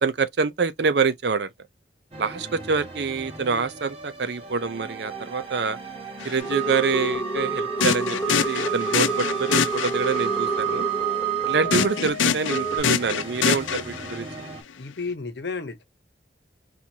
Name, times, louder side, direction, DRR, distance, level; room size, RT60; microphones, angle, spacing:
voice 1, 0.0-1.5 2.2-5.8 6.2-10.9 11.5-14.3, right 4 dB, 60° right, 0.5 m, -26 dB
sound 1, 2.1-14.6, right 2 dB, 30° right, 1.2 m, -39 dB
sound 2, 6.2-6.4 7.8-10.3 11.7-14.3, left 7 dB, 90° left, 0.5 m, -25 dB
sound 3, 6.4-12.8, right 5 dB, 5° left, 2.5 m, -27 dB
voice 2, 14.7-15.8, left 4 dB, 65° left, 0.8 m, -32 dB
4.4 x 2.5 x 2.7 m
head